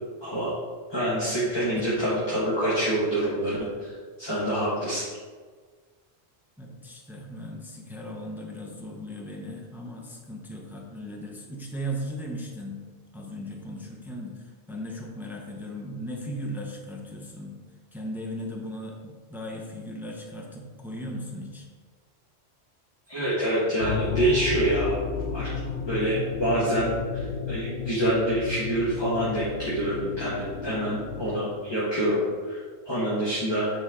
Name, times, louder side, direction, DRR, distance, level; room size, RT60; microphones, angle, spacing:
voice 1, 0.9-5.0 23.1-25.0 25.3-25.5 25.9-32.2 32.5-33.7, right 1 dB, 25° left, -8 dB, 1.5 m, -26 dB
voice 2, 6.6-12.8 13.1-17.6 17.9-21.7, equal, ahead, -1 dB, 0.8 m, -37 dB
sound 1, 23.8-31.4, left 6 dB, 75° left, 0.9 m, -33 dB
8.8 x 4.5 x 3.7 m, 1.5 s
omnidirectional pair, 1.1 m